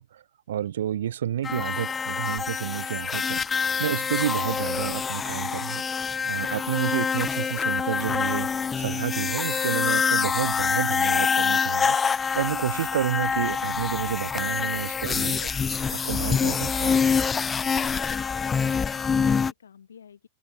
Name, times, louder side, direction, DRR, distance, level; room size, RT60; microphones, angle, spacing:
voice 1, 0.0-3.4 3.8-8.5 8.8-12.0 12.3-15.5 15.9-17.0, right 10 dB, 60° right, 0.9 m, -30 dB
sound 1, 1.4-19.5, left 6 dB, 15° left, 0.5 m, -26 dB
voice 2, 18.0-20.3, left 7 dB, 70° left, 3.6 m, -52 dB
figure-of-eight pair, 90°, 0 cm